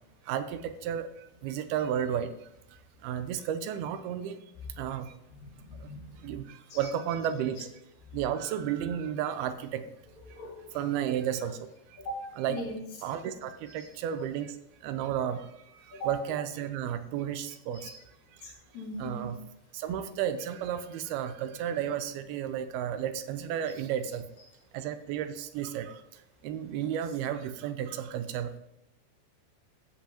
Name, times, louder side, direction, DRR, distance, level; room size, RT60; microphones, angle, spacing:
voice 1, 0.3-2.3 3.0-4.4 4.8-5.1 5.8-5.9 6.2-7.7 8.1-9.8 10.7-11.7 12.4-12.6 13.0-14.6 14.8-15.5 15.9-17.9 19.0-19.4 19.7-24.2 24.7-26.0 26.4-28.5, right 9 dB, 85° right, 10 dB, 2.5 m, -32 dB
voice 2, 5.4-6.2 6.7-6.8 10.3-10.8 12.0-12.8 15.9-16.1 17.7-18.0 18.4-19.3, equal, 65° left, 0 dB, 3.2 m, -40 dB
13.5 x 8.3 x 2.9 m, 0.85 s
omnidirectional pair, 4.4 m